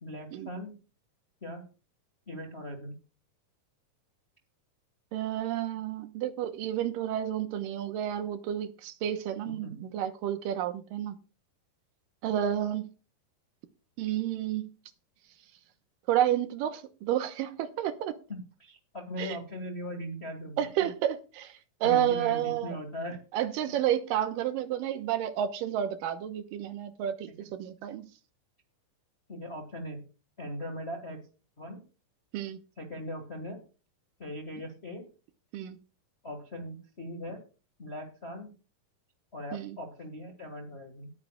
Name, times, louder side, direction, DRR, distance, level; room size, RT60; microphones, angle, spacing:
voice 1, 0.0-0.8 1.4-1.6 2.3-3.0 9.4-9.8 18.3-20.9 21.8-23.2 27.4-27.5 29.3-30.0 30.4-31.2 31.6-31.8 32.8-33.6 34.2-35.1 36.2-37.4 37.8-38.5 39.3-41.1, equal, 35° left, 1.0 m, -39 dB
voice 2, 5.1-11.1 12.2-12.9 14.0-14.7 16.1-18.2 19.2-19.4 20.6-22.8 23.3-28.1 32.3-32.6 35.5-35.8 39.5-39.8, right 11 dB, 80° right, 2.5 m, -30 dB
19.5 x 9.5 x 2.3 m
omnidirectional pair, 4.0 m